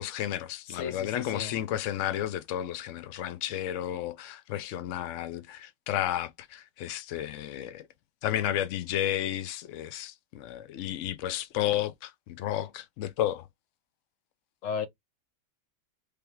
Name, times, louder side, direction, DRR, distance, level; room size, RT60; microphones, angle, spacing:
voice 1, 0.0-7.9 8.2-13.5, left 12 dB, 75° left, 0.7 m, -32 dB
voice 2, 0.7-1.5 14.6-14.9, left 6 dB, 55° left, 1.1 m, -34 dB
3.4 x 3.4 x 4.4 m
omnidirectional pair, 1.8 m